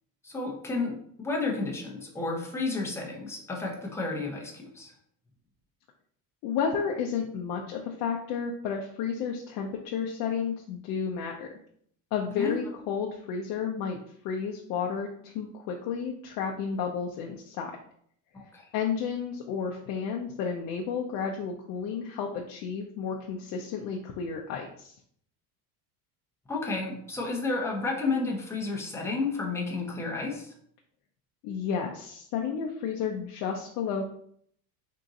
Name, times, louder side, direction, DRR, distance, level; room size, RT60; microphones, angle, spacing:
voice 1, 0.2-4.9 12.4-12.5 18.3-18.7 26.5-30.5, left 3 dB, 5° left, -1 dB, 0.6 m, -31 dB
voice 2, 6.4-11.5 12.1-14.0 14.2-17.7 18.7-24.9 31.4-34.1, left 6 dB, 55° left, 0 dB, 0.6 m, -32 dB
3.7 x 2.6 x 3.9 m, 0.64 s
cardioid pair, 150°, 40 cm